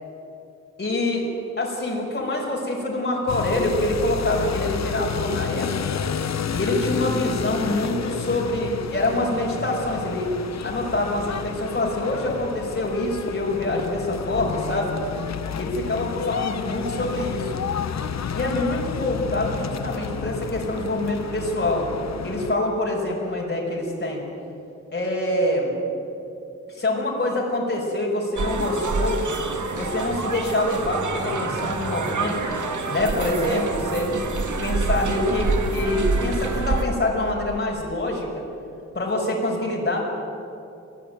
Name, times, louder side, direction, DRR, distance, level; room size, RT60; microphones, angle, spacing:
voice 1, 0.8-1.2 1.6-6.0 6.5-10.3 10.6-14.9 15.5-17.5 18.3-21.9 22.2-24.2 24.9-25.7 26.7-29.2 29.7-32.6 32.9-34.1 34.6-38.4 38.9-40.0, left 1 dB, 35° left, -3 dB, 5.6 m, -25 dB
sound 1, 3.3-22.6, left 7 dB, 65° left, 0.9 m, -31 dB
sound 2, 28.4-36.8, right 3 dB, 80° right, 2.1 m, -26 dB
24.5 x 17.5 x 9.2 m, 2.7 s
wide cardioid pair, 110°, 29 cm